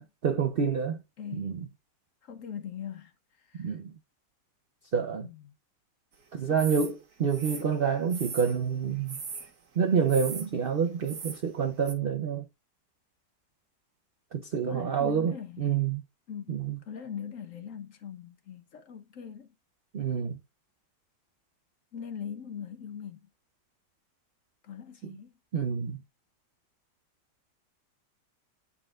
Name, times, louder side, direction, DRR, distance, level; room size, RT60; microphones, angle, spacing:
voice 1, 0.0-1.0 1.3-1.7 3.6-3.9 4.9-5.3 6.3-9.2 9.8-12.4 14.3-16.0 16.5-16.8 19.9-20.4 25.0-25.2 25.5-26.0, right 6 dB, 80° right, 0.5 m, -28 dB
voice 2, 1.2-1.5 2.3-3.1 3.5-3.7 5.2-5.3 6.5-6.6 14.6-15.7 16.3-19.5 21.9-23.2 24.7-25.3, left 8 dB, 60° left, 1.0 m, -41 dB
sound 1, 6.6-6.9 7.3-8.6 9.1-9.5 10.1-10.5 11.0-11.4 11.9-12.0, right 5 dB, 60° right, 1.9 m, -39 dB
9.9 x 4.2 x 2.4 m
omnidirectional pair, 1.9 m